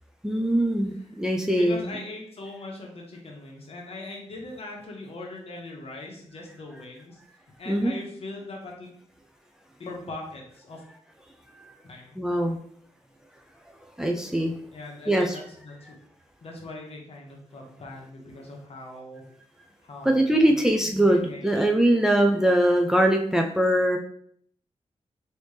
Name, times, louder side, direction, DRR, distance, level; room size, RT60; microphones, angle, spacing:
voice 1, 0.2-2.0 7.7-7.9 11.5-11.7 12.2-12.6 14.0-14.5 15.1-15.4 20.0-24.0, right 1 dB, 5° right, 3 dB, 0.4 m, -22 dB
voice 2, 1.5-7.2 7.6-8.9 9.8-10.8 11.8-12.2 14.7-16.0 16.4-19.2 19.8-21.7, left 2 dB, 60° left, 0 dB, 1.0 m, -41 dB
3.3 x 2.7 x 3.3 m, 0.64 s
cardioid pair, 85°, 12 cm